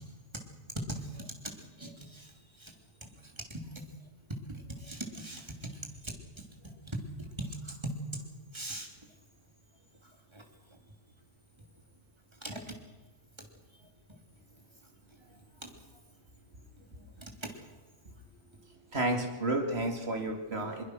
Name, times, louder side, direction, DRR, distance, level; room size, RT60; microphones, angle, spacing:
voice 1, 0.9-2.3 2.6-2.7 3.2-3.8 4.5-5.7 6.0-6.1 6.6-7.9 8.5-8.9 10.0-10.4 10.7-10.8 12.4-12.6 13.4-13.5 13.8-13.9 15.6-15.7 16.8-17.5 20.6-20.7, right 1 dB, 20° right, 2 dB, 3.1 m, -41 dB
voice 2, 18.9-20.8, right 2 dB, 50° right, 2 dB, 3.0 m, -31 dB
22.5 x 22.5 x 6.3 m, 1.2 s
omnidirectional pair, 1.4 m